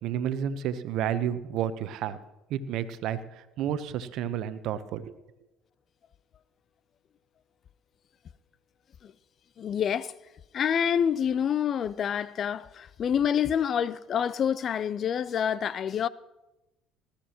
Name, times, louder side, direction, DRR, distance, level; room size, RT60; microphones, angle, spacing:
voice 1, 0.0-2.2 2.5-5.1, right 9 dB, 65° right, 0.9 m, -31 dB
voice 2, 9.6-10.1 10.5-16.1, left 8 dB, 50° left, 0.4 m, -27 dB
20.0 x 13.0 x 3.0 m
hypercardioid pair, 65°, 0 cm